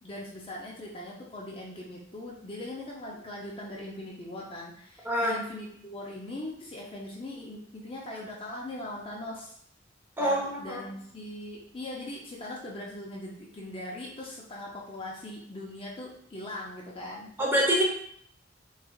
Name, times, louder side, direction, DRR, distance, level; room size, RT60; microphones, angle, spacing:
voice 1, 0.0-9.6 10.2-17.3, left 1 dB, 30° left, -3 dB, 0.5 m, -40 dB
voice 2, 5.0-5.4 10.2-10.8 17.4-17.8, equal, 10° right, -3 dB, 0.7 m, -25 dB
3.5 x 3.2 x 2.2 m, 0.66 s
head